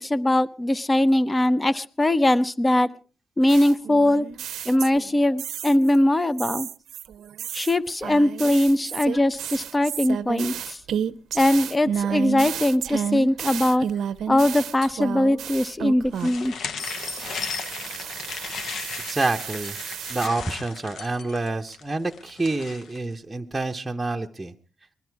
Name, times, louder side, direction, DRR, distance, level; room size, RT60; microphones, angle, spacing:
voice 1, 0.0-2.9 3.4-4.3 4.7-6.7 7.5-10.8 11.3-13.9 14.3-16.5, left 1 dB, 15° left, 16 dB, 0.7 m, -21 dB
sound 1, 3.5-5.1 5.4-6.0 6.4-16.5 16.8-20.3, right 8 dB, 90° right, 0.7 m, -32 dB
sound 2, 16.1-23.0, left 6 dB, 75° left, 1.1 m, -36 dB
voice 2, 19.1-19.8 20.1-24.5, right 2 dB, 10° right, 1 dB, 0.9 m, -27 dB
21.0 x 12.5 x 4.6 m, 0.38 s
wide cardioid pair, 130°, 0 cm